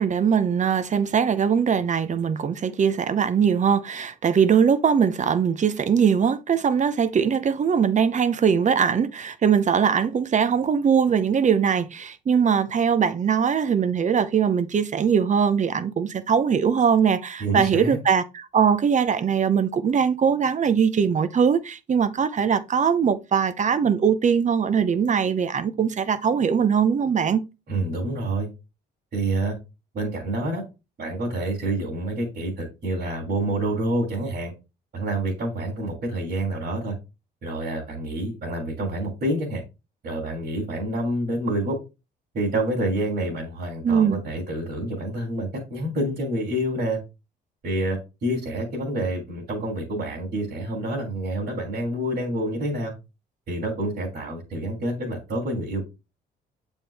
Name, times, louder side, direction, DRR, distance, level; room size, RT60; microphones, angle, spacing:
voice 1, 0.0-27.4 43.8-44.2, right 7 dB, 40° right, 0.8 m, -21 dB
voice 2, 17.4-18.0 27.7-28.5 29.1-29.5 29.9-30.6 31.0-34.5 34.9-36.9 37.4-39.6 40.0-41.8 42.3-47.0 47.6-52.9 53.5-55.8, right 1 dB, 55° right, 3.0 m, -27 dB
7.5 x 4.5 x 3.4 m
supercardioid pair, 75°, 19 cm